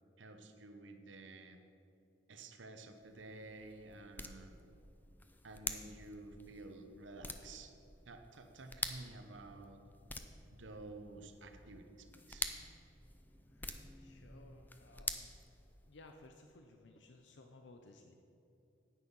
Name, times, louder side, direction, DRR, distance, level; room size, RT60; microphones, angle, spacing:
voice 1, 0.2-1.6 2.3-4.6 5.4-7.7 8.1-9.8 10.5-12.5, right 2 dB, 85° right, 6 dB, 0.9 m, -52 dB
sound 1, 2.9-16.1, left 2 dB, 10° left, 0.5 m, -48 dB
voice 2, 13.5-15.3 15.9-18.2, left 2 dB, 70° left, 4 dB, 0.7 m, -59 dB
9.8 x 9.1 x 5.5 m, 3.0 s
head